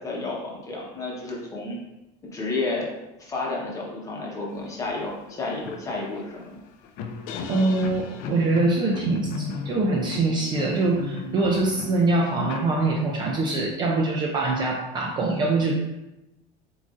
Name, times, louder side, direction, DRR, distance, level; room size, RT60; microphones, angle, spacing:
voice 1, 0.0-1.8 2.3-2.9 3.2-6.6, left 3 dB, 20° left, -3 dB, 0.9 m, -31 dB
sound 1, 4.9-5.0 5.3-13.3, left 5 dB, 60° left, 0.5 m, -36 dB
voice 2, 7.5-15.7, right 2 dB, 25° right, 0 dB, 0.4 m, -23 dB
7.4 x 2.5 x 2.5 m, 0.95 s
cardioid pair, 165°, 17 cm